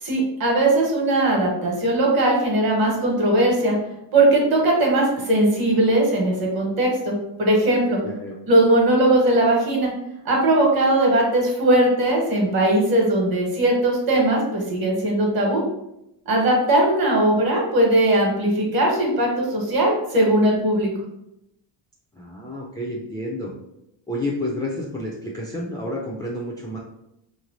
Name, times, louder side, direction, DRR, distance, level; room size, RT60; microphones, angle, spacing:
voice 1, 0.0-3.7 4.1-8.0 8.5-9.9 10.2-15.6 16.2-20.9, right 1 dB, 50° right, -1 dB, 1.5 m, -19 dB
voice 2, 8.0-8.3 22.2-23.5 24.1-26.8, left 1 dB, 10° left, -4 dB, 0.3 m, -30 dB
3.2 x 3.2 x 3.8 m, 0.84 s
cardioid pair, 155°, 49 cm